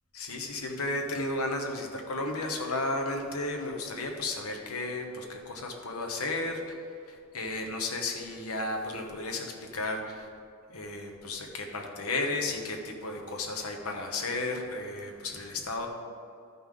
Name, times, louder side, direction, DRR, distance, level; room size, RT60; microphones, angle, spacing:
voice 1, 0.2-6.6 7.1-10.3 10.7-15.9, left 2 dB, 85° left, 2 dB, 1.2 m, -33 dB
13.5 x 5.6 x 3.8 m, 2.4 s
head